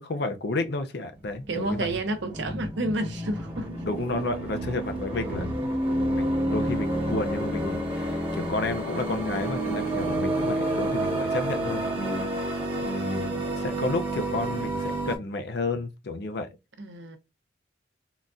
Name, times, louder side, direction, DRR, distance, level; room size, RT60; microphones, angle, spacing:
voice 1, 0.0-1.9 3.8-5.5 5.8-5.9 6.1-16.5, left 2 dB, 60° left, 0.5 m, -31 dB
sound 1, 1.1-15.2, right 1 dB, 30° right, 1.0 m, -29 dB
voice 2, 1.5-3.8 16.8-17.2, right 1 dB, 70° right, 0.7 m, -30 dB
3.8 x 2.5 x 2.2 m
head